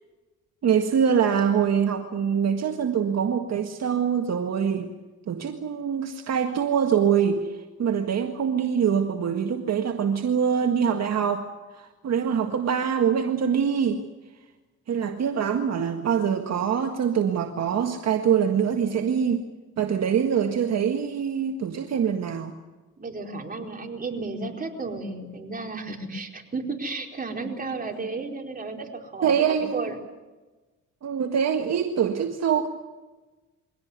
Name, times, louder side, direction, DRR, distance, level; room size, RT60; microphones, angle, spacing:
voice 1, 0.6-4.9 5.3-7.5 7.8-11.5 11.8-14.0 14.9-19.4 19.8-22.5 29.2-29.9 31.0-32.7, right 7 dB, 60° right, 4 dB, 1.8 m, -24 dB
voice 2, 23.0-30.0, right 3 dB, 30° right, 1 dB, 4.4 m, -33 dB
23.5 x 17.5 x 9.6 m, 1.2 s
cardioid pair, 90°, 30 cm